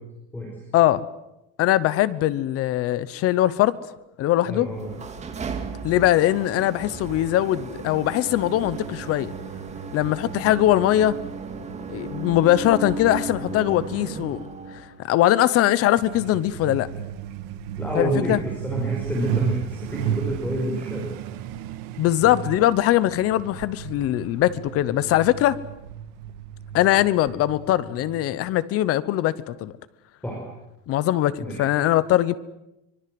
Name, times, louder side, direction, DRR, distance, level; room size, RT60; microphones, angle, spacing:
voice 1, 0.7-1.0 1.6-3.8 4.2-4.7 5.8-9.3 9.9-11.2 11.9-14.5 15.0-16.9 17.9-18.4 22.0-25.6 26.7-29.7 30.9-32.3, left 14 dB, 40° left, 1.0 m, -21 dB
voice 2, 4.5-5.0 17.8-21.1 30.2-30.4 31.4-31.6, equal, 5° left, 5.4 m, -28 dB
sound 1, 4.6-15.0, right 5 dB, 20° right, 2.2 m, -35 dB
Truck, 16.0-28.3, right 10 dB, 60° right, 1.6 m, -34 dB
24.5 x 23.5 x 7.9 m
cardioid pair, 170°, 37 cm